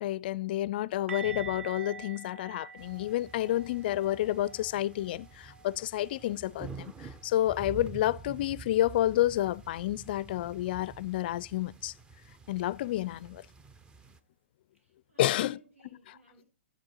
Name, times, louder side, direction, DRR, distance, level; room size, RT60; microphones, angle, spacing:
voice 1, 0.0-11.9 12.5-13.4 15.2-15.6, left 14 dB, 45° left, 0.4 m, -30 dB
sound 1, 1.1-6.9 7.1-7.4 7.7-7.9 11.1-11.2, right 5 dB, 70° right, 1.2 m, -46 dB
sound 2, 2.8-14.2, right 5 dB, 10° right, 0.6 m, -48 dB
voice 2, 14.7-16.4, right 1 dB, 90° right, 4.8 m, -59 dB
11.0 x 8.2 x 2.9 m
figure-of-eight pair, 120°, 7 cm